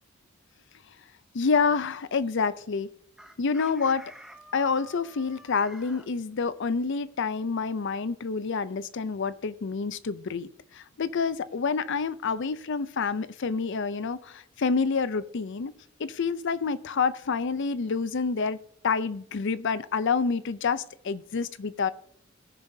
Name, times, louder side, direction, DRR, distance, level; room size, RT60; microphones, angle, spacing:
voice 1, 1.3-2.9 3.4-4.0 4.5-15.7 16.0-18.6 18.8-21.9, left 5 dB, 60° left, 15 dB, 0.5 m, -28 dB
Chicken rooster, 3.2-6.1, equal, 5° right, 0.9 m, -49 dB
19.5 x 6.9 x 2.7 m, 0.68 s
head